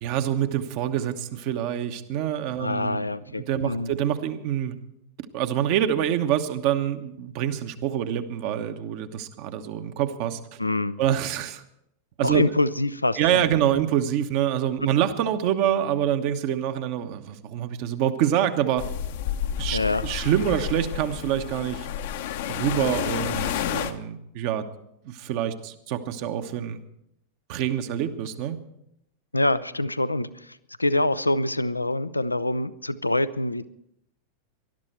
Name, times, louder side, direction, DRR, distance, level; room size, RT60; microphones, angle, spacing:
voice 1, 0.0-3.0 3.4-4.8 5.2-10.6 11.0-11.6 12.2-12.5 13.2-18.8 19.6-21.9 22.5-24.7 25.0-26.8 27.5-28.6, right 10 dB, 45° right, 8 dB, 1.1 m, -26 dB
voice 2, 2.6-3.9 10.6-11.0 12.2-13.5 19.7-20.0 29.3-33.6, left 2 dB, 85° left, 15 dB, 0.6 m, -25 dB
sound 1, 18.8-23.9, left 10 dB, 55° left, 0.9 m, -30 dB
19.5 x 12.5 x 4.5 m, 0.77 s
figure-of-eight pair, 90°, 0 cm